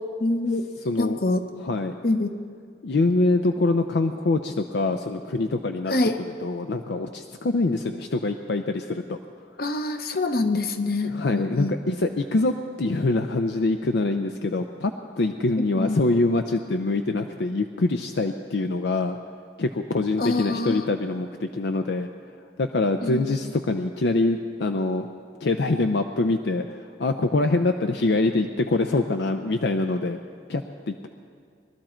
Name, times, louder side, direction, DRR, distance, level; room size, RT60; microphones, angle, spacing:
voice 1, 0.2-0.7 1.0-1.4 2.0-2.4 5.9-6.1 9.6-11.7 15.8-16.0 20.2-20.8 23.0-23.2, left 2 dB, 55° left, 7 dB, 0.9 m, -25 dB
voice 2, 0.8-1.2 1.5-2.0 2.8-5.9 6.4-9.2 11.0-19.2 19.6-22.1 22.6-25.1 25.4-30.2 30.5-31.1, left 2 dB, 75° left, 6 dB, 0.5 m, -24 dB
21.5 x 12.5 x 4.4 m, 2.2 s
head